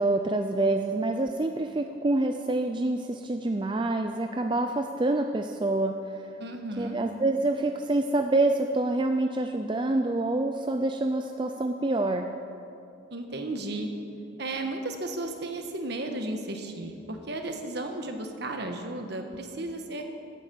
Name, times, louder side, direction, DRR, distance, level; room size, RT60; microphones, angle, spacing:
voice 1, 0.0-6.2 6.8-12.3, right 2 dB, 25° right, 5 dB, 0.4 m, -27 dB
voice 2, 6.4-7.0 13.1-13.9 14.4-20.0, right 2 dB, 55° right, 4 dB, 1.4 m, -34 dB
16.0 x 9.1 x 7.0 m, 2.7 s
head